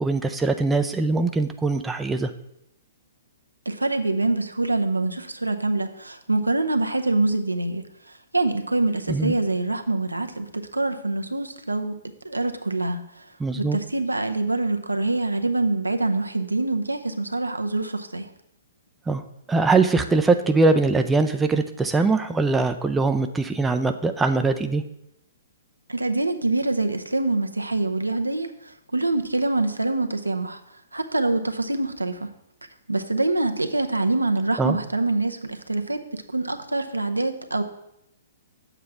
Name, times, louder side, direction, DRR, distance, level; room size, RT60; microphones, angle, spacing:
voice 1, 0.0-2.3 9.1-9.3 13.4-13.8 19.1-19.2 19.5-24.8 34.6-34.8, right 3 dB, 10° right, 6 dB, 0.4 m, -22 dB
voice 2, 3.7-11.9 12.2-13.2 13.5-18.3 25.9-30.6 30.9-32.3 32.9-37.6, right 2 dB, 85° right, 7 dB, 0.8 m, -25 dB
8.6 x 7.1 x 3.5 m, 0.81 s
figure-of-eight pair, 120°, 0 cm